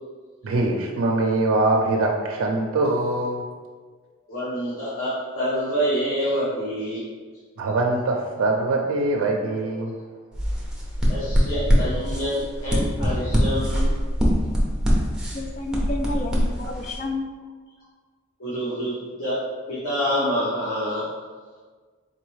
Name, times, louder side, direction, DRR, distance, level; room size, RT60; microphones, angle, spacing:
voice 1, 0.4-3.4 7.6-9.9, right 2 dB, 80° right, 0 dB, 0.4 m, -23 dB
voice 2, 4.3-7.0 11.1-13.9 18.4-19.4 19.7-21.0, equal, 85° left, -11 dB, 1.1 m, -27 dB
sound 1, 10.3-17.0, equal, 5° right, 0.7 m, -23 dB
voice 3, 15.1-17.3, left 2 dB, 35° left, 3 dB, 0.4 m, -31 dB
4.1 x 3.0 x 3.1 m, 1.5 s
head